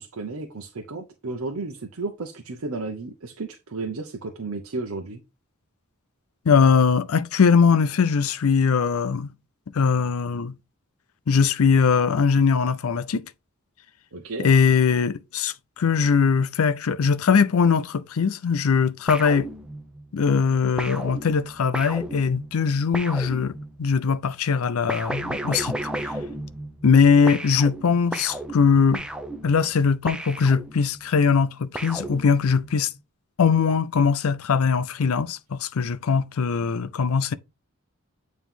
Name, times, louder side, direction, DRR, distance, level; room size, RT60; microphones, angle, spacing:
voice 1, 0.0-5.2 14.1-14.5, right 3 dB, 80° right, 0.8 m, -33 dB
voice 2, 6.5-9.3 9.7-10.5 11.3-13.2 14.4-19.5 20.1-26.1 26.8-29.0 29.4-32.9 33.4-37.3, left 5 dB, 80° left, 0.5 m, -21 dB
sound 1, 19.1-20.1 20.8-23.9 24.9-27.0 27.3-31.0 31.7-32.7, right 1 dB, 5° right, 0.6 m, -34 dB
9.1 x 3.0 x 3.6 m
head